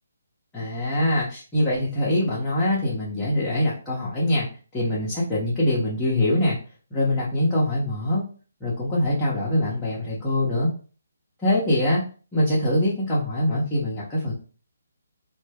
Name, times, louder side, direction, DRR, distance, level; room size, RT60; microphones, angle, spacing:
voice 1, 0.5-4.5 4.7-6.6 6.9-8.2 8.6-10.7 11.4-12.0 12.3-14.3, left 1 dB, 10° left, -8 dB, 0.7 m, -23 dB
2.1 x 2.1 x 3.3 m, 0.38 s
hypercardioid pair, 160°, 0 cm